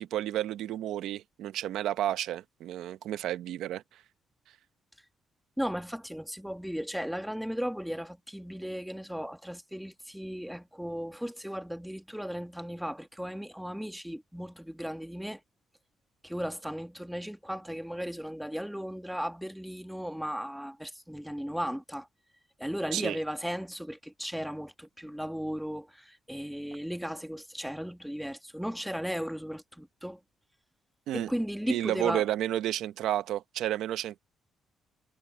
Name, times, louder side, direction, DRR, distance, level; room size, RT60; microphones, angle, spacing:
voice 1, 0.0-4.0 22.9-23.2 31.1-31.3 31.7-34.2, right 12 dB, 85° right, 0.8 m, -31 dB
voice 2, 5.6-15.4 16.2-22.1 22.6-30.2 31.1-32.2, equal, ahead, 1.6 m, -36 dB
cardioid pair, 90°, 0 cm